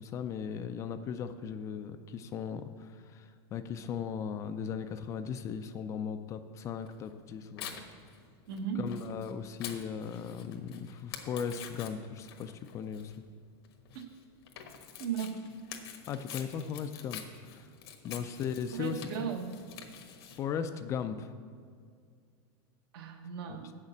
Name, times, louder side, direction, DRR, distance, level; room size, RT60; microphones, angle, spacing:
voice 1, 0.0-7.7 8.8-13.1 16.1-17.7 18.0-19.3 20.4-21.3 23.5-23.6, left 7 dB, 25° left, 9 dB, 0.4 m, -37 dB
Tearing, 6.8-20.4, left 8 dB, 80° left, 1.3 m, -47 dB
voice 2, 8.5-8.9 13.9-14.1 15.0-15.3 18.7-19.5 22.9-23.8, right 7 dB, 70° right, 4 dB, 1.2 m, -36 dB
8.2 x 6.6 x 7.1 m, 2.1 s
supercardioid pair, 155°, 13 cm